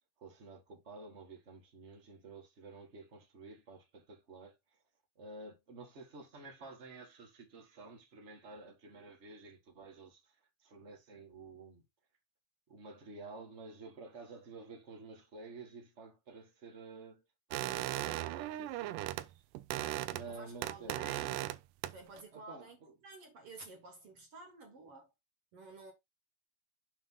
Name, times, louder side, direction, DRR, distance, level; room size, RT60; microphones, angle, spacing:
voice 1, 0.2-4.5 5.2-10.3 10.6-11.8 12.7-17.2 17.5-19.4 20.1-21.2 22.3-22.9, right 3 dB, 35° right, 1.0 m, -51 dB
sound 1, 17.5-19.3 19.5-20.3 20.6-21.6 21.8-22.2, right 15 dB, 80° right, 2.0 m, -37 dB
voice 2, 20.3-21.4 21.9-25.1 25.5-25.9, right 3 dB, 50° right, 2.0 m, -52 dB
7.2 x 3.3 x 5.4 m
omnidirectional pair, 4.1 m